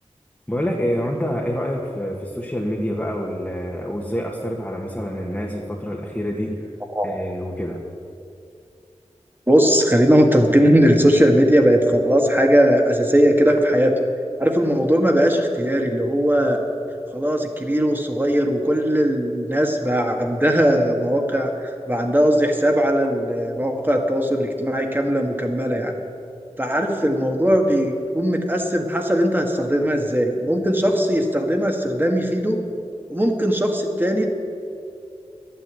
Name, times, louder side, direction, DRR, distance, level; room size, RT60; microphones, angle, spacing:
voice 1, 0.5-6.5 7.0-7.8, equal, 10° left, -2 dB, 1.6 m, -27 dB
voice 2, 9.5-13.9 14.4-16.6 17.1-25.9 26.6-32.6 33.1-34.3, equal, 15° right, 2 dB, 1.7 m, -19 dB
12.5 x 9.3 x 8.3 m, 2.5 s
wide cardioid pair, 60°, 12 cm